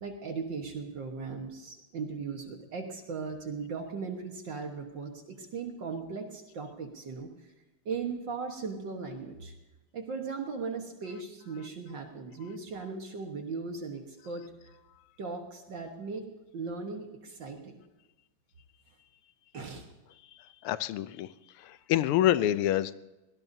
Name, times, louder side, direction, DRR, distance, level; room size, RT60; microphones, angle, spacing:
voice 1, 0.0-7.5 7.9-9.5 9.9-14.7 15.2-16.3 16.5-17.8 19.5-19.9, right 4 dB, 60° right, 3 dB, 2.0 m, -38 dB
voice 2, 20.6-21.3 21.6-22.9, left 12 dB, 85° left, 15 dB, 1.6 m, -26 dB
23.0 x 17.5 x 2.7 m, 1.1 s
omnidirectional pair, 2.4 m